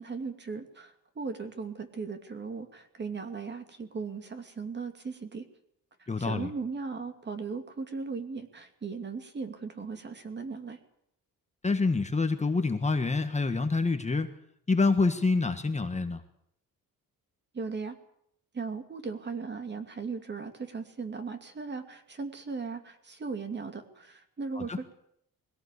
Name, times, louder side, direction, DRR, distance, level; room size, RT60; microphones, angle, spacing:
voice 1, 0.0-5.5 6.0-10.8 17.5-18.0 18.5-24.9, right 4 dB, 30° right, 7 dB, 2.7 m, -37 dB
voice 2, 6.1-6.5 11.6-14.3 14.7-16.2 24.5-24.8, left 3 dB, 20° left, 7 dB, 1.5 m, -27 dB
22.0 x 17.0 x 8.5 m, 0.72 s
cardioid pair, 150°, 35 cm